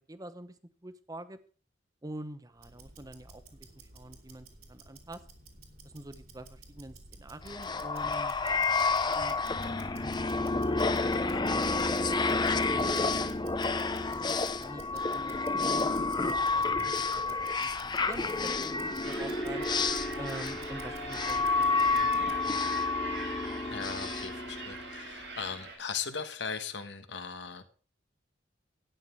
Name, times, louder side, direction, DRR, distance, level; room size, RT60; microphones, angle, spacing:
voice 1, 0.1-1.4 2.0-5.2 5.8-8.7 8.9-9.4 10.1-13.5 14.0-19.7 20.2-22.7, right 1 dB, 20° right, 12 dB, 0.9 m, -46 dB
Tick-tock, 2.5-22.5, right 1 dB, 55° right, 2.8 m, -51 dB
sound 1, 7.5-25.1, left 3 dB, 25° left, 0.6 m, -30 dB
sound 2, 19.0-25.8, right 3 dB, 75° right, 5.1 m, -42 dB
voice 2, 23.7-27.8, left 6 dB, 80° left, 8 dB, 1.4 m, -38 dB
12.5 x 9.4 x 4.6 m, 0.39 s
head